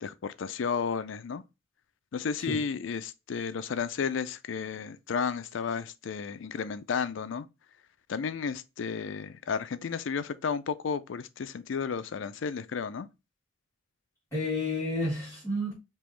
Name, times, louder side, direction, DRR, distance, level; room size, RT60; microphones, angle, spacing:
voice 1, 0.0-1.4 2.1-7.5 8.1-13.1, left 6 dB, 75° left, 0.4 m, -33 dB
voice 2, 14.3-15.7, left 1 dB, 15° left, 2.4 m, -31 dB
5.4 x 2.9 x 3.2 m
head